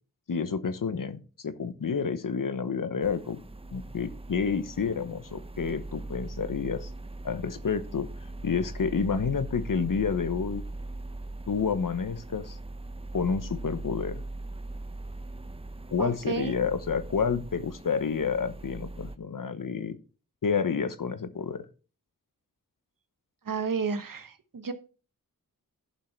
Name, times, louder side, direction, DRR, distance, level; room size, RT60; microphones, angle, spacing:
voice 1, 0.3-3.4 3.7-6.9 7.2-8.1 8.4-10.6 11.5-12.6 13.1-14.2 15.9-20.0 20.4-21.7, left 6 dB, 70° left, 12 dB, 1.0 m, -29 dB
sound 1, 3.0-19.2, right 2 dB, 15° right, 0.7 m, -40 dB
voice 2, 16.0-16.5 23.4-24.7, right 5 dB, 75° right, 9 dB, 1.2 m, -31 dB
11.5 x 5.6 x 4.5 m, 0.35 s
wide cardioid pair, 65°, 34 cm